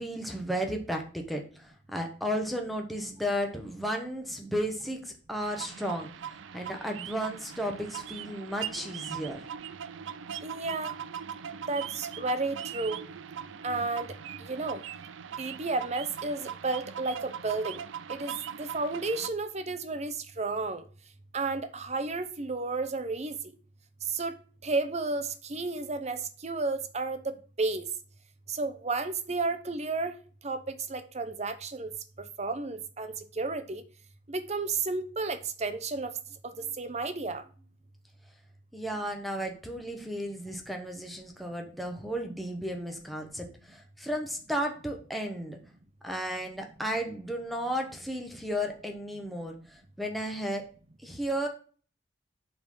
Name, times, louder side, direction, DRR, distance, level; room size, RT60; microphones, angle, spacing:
voice 1, 0.0-9.4 38.7-45.6 46.0-50.6 51.0-51.5, equal, ahead, 1.0 m, -34 dB
sound 1, 5.4-19.3, right 8 dB, 85° right, 0.5 m, -40 dB
voice 2, 10.4-10.9 11.7-13.0 13.6-14.1 14.4-14.8 15.4-17.8 18.1-18.3 18.6-20.8 21.3-23.3 24.1-24.3 24.6-27.9 28.5-30.1 30.4-31.9 32.4-33.8 34.3-36.1 36.4-37.4, right 3 dB, 35° right, 0.8 m, -32 dB
7.9 x 4.0 x 5.5 m
head